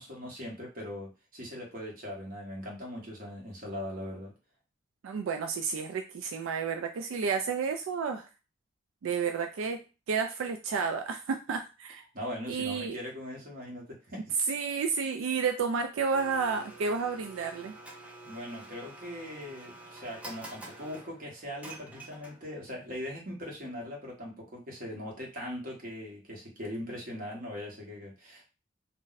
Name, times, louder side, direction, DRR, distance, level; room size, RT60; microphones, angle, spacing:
voice 1, 0.0-4.3 12.1-14.4 18.2-28.4, left 1 dB, 45° right, -2 dB, 1.1 m, -40 dB
voice 2, 5.0-8.2 9.0-9.8 10.1-12.0 12.5-13.0 14.5-17.7, right 5 dB, 85° right, 5 dB, 0.3 m, -31 dB
Domestic sounds home sounds, 16.1-22.6, right 2 dB, 5° right, 0.5 m, -48 dB
2.5 x 2.1 x 3.9 m, 0.30 s
head